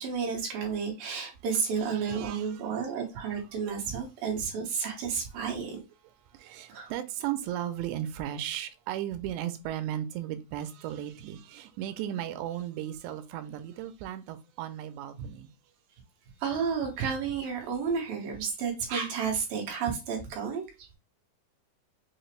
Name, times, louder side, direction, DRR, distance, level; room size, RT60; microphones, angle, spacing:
voice 1, 0.0-5.8 6.7-6.9 16.4-20.9, right 6 dB, 65° right, 2.8 m, -31 dB
voice 2, 1.9-2.8 6.3-15.5, right 11 dB, 90° right, 2.8 m, -36 dB
6.7 x 2.4 x 3.2 m
omnidirectional pair, 4.9 m